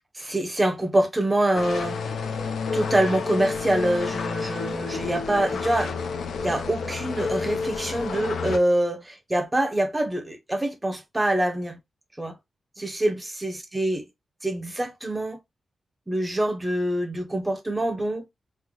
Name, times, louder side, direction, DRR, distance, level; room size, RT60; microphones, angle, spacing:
voice 1, 0.2-2.0 2.7-5.9 6.4-11.8 12.2-12.3 12.8-14.0 14.4-15.4 16.1-18.2, right 1 dB, 10° right, 0.7 m, -25 dB
sound 1, 1.5-8.6, left 5 dB, 75° left, 0.5 m, -30 dB
3.1 x 2.1 x 3.6 m
wide cardioid pair, 170°, 0 cm